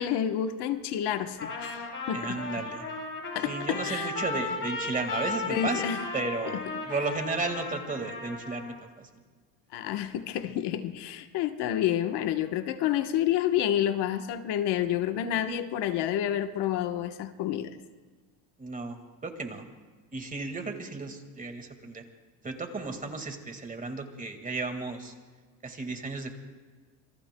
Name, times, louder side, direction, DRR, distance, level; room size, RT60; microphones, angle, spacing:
voice 1, 0.0-2.4 3.3-4.1 5.5-6.0 9.7-17.8, left 11 dB, 65° left, 8 dB, 1.1 m, -29 dB
Trumpet, 1.4-8.7, left 3 dB, 30° left, 4.7 m, -35 dB
voice 2, 2.1-2.9 3.4-9.1 18.6-19.7 20.1-22.0 22.4-25.1 25.6-26.3, right 3 dB, 20° right, 6 dB, 1.8 m, -34 dB
27.5 x 23.0 x 2.2 m, 1.4 s
cardioid pair, 130°, 44 cm